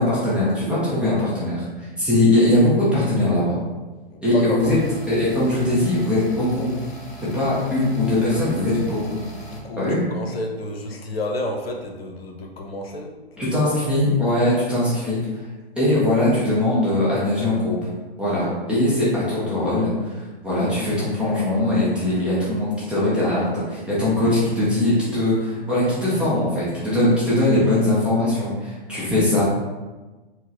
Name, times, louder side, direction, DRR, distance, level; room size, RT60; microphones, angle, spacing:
voice 1, 0.0-3.6 4.2-4.8 5.1-6.7 7.3-9.2 9.8-10.0 13.4-15.2 15.8-17.7 18.2-29.4, left 1 dB, 5° right, -10 dB, 0.3 m, -21 dB
voice 2, 4.1-4.8 9.5-13.1 13.5-13.7, left 1 dB, 75° left, 2 dB, 0.7 m, -30 dB
sound 1, 4.6-9.6, right 2 dB, 55° left, 1.2 m, -39 dB
4.4 x 2.1 x 2.7 m, 1.2 s
hypercardioid pair, 130°, 31 cm